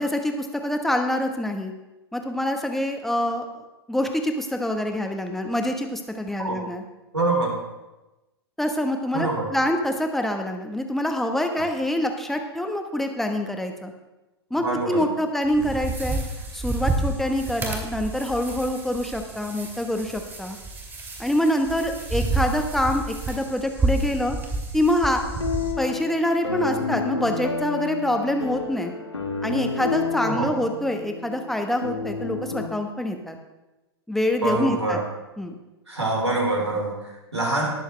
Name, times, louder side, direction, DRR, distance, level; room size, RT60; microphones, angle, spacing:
voice 1, 0.0-1.7 2.1-3.4 3.9-6.8 8.6-13.9 14.5-16.2 16.5-20.6 21.2-24.4 24.7-25.2 25.8-28.9 29.4-33.4 34.1-35.0 35.4-35.5, left 1 dB, ahead, 4 dB, 1.1 m, -25 dB
voice 2, 7.1-7.6 9.1-9.5 14.5-15.0 15.6-15.7 30.2-30.5 34.4-35.0 35.9-37.7, right 2 dB, 90° right, -1 dB, 3.7 m, -25 dB
sound 1, 15.4-25.7, right 2 dB, 15° right, 2.8 m, -30 dB
sound 2, 25.2-32.7, left 4 dB, 85° left, 1.5 m, -30 dB
19.5 x 7.0 x 3.3 m, 1.1 s
figure-of-eight pair, 105°, 14 cm